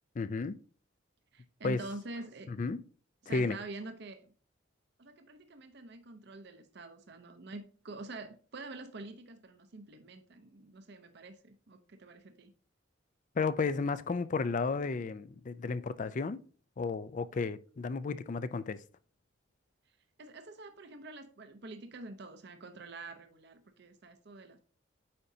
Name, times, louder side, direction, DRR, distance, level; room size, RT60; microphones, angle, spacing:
voice 1, 0.2-0.6 1.6-1.8 2.5-2.8 3.3-3.6 13.3-16.4 16.8-18.8, left 4 dB, 40° left, 0.4 m, -33 dB
voice 2, 1.3-2.5 3.2-4.3 5.0-12.5 20.2-24.6, right 2 dB, 60° right, 0.7 m, -46 dB
8.7 x 5.0 x 2.7 m
head